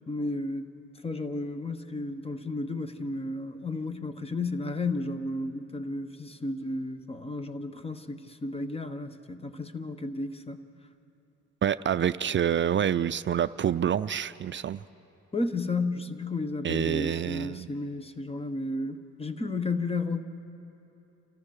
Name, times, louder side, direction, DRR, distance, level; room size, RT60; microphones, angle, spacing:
voice 1, 0.1-0.6 1.0-10.6 15.3-20.2, left 2 dB, 20° left, 9 dB, 1.2 m, -33 dB
voice 2, 11.6-14.8 16.6-17.7, right 9 dB, 40° right, 13 dB, 0.4 m, -27 dB
29.5 x 13.5 x 6.6 m, 2.9 s
cardioid pair, 90°, 30 cm